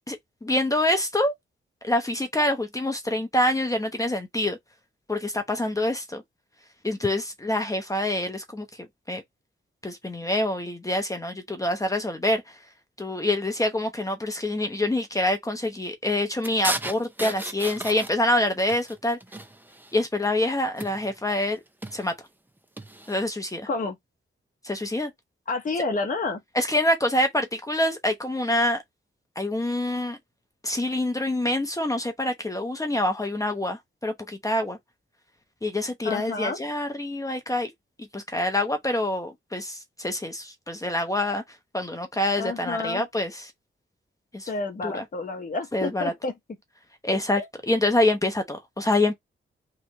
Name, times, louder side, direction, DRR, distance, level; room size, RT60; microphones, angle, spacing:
voice 1, 0.1-1.3 1.8-4.6 5.1-6.2 6.8-8.7 9.1-9.2 9.8-12.4 13.0-19.2 19.9-21.6 21.9-22.1 23.1-23.7 24.6-25.1 26.6-28.8 29.4-30.2 30.6-34.8 35.6-37.7 38.0-41.4 41.7-43.3 44.3-44.5 44.8-45.0 45.7-46.1 47.0-47.4 47.7-49.1, left 1 dB, 15° left, 0.8 m, -26 dB
sound 1, 16.4-18.4 18.7-20.0 20.8-21.2 21.7-22.1 22.8-23.2, right 1 dB, 10° right, 0.6 m, -34 dB
voice 2, 23.7-24.0 25.5-26.4 36.0-36.6 42.3-43.1 44.5-46.3 47.4-47.5, left 3 dB, 40° left, 1.0 m, -29 dB
3.8 x 3.2 x 2.9 m
wide cardioid pair, 135°, 21 cm